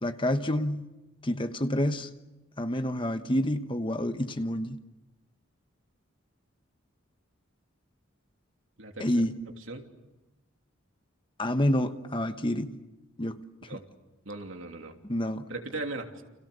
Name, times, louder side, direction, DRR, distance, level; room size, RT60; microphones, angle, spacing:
voice 1, 0.0-0.9 1.2-2.1 2.6-4.8 9.0-9.4 11.4-12.8 13.2-13.4 15.0-15.5, left 1 dB, 25° left, 1.1 m, -28 dB
voice 2, 8.8-9.2 9.7-9.8 13.7-13.9 14.2-14.9 15.5-16.2, right 2 dB, 70° right, 3.1 m, -38 dB
29.5 x 28.0 x 6.9 m
head